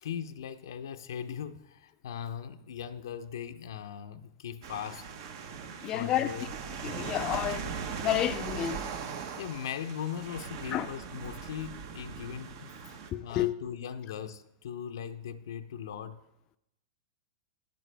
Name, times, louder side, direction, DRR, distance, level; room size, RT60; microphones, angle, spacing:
voice 1, 0.0-5.1 5.9-6.5 9.4-12.8 13.2-16.2, left 8 dB, 80° left, 0.5 m, -39 dB
sound 1, 4.6-13.1, right 6 dB, 60° right, 1.1 m, -39 dB
voice 2, 5.8-6.3 6.8-7.7 8.0-8.9 10.7-10.9 13.1-13.5, left 12 dB, 35° left, 0.4 m, -30 dB
10.5 x 9.2 x 3.3 m
hypercardioid pair, 135°, 2 cm